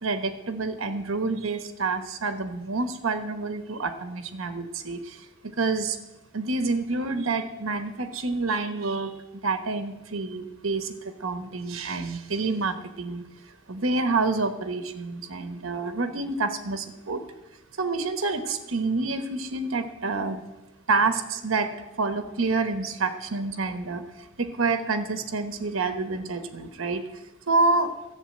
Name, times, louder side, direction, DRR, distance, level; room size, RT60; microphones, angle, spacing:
voice 1, 0.0-5.2 5.4-6.0 6.3-9.1 9.4-13.2 13.7-17.2 17.8-20.4 20.9-21.7 22.0-24.0 24.4-27.0 27.5-27.9, right 3 dB, 75° right, 8 dB, 1.1 m, -28 dB
13.0 x 7.0 x 8.6 m, 0.99 s
head